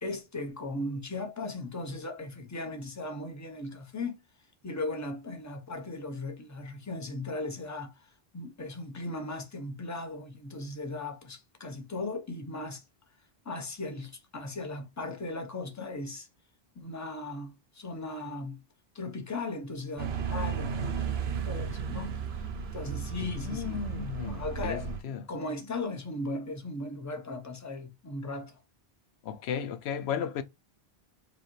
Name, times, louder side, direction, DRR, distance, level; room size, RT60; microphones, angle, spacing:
voice 1, 0.0-4.2 4.6-12.8 13.4-16.3 16.7-18.6 18.9-22.5 22.7-28.6, left 2 dB, 20° left, 0.8 m, -37 dB
sound 1, 20.0-25.0, right 6 dB, 80° right, 1.0 m, -34 dB
voice 2, 23.4-25.2 29.2-30.4, left 8 dB, 90° left, 0.8 m, -35 dB
5.0 x 2.3 x 3.1 m
omnidirectional pair, 1.0 m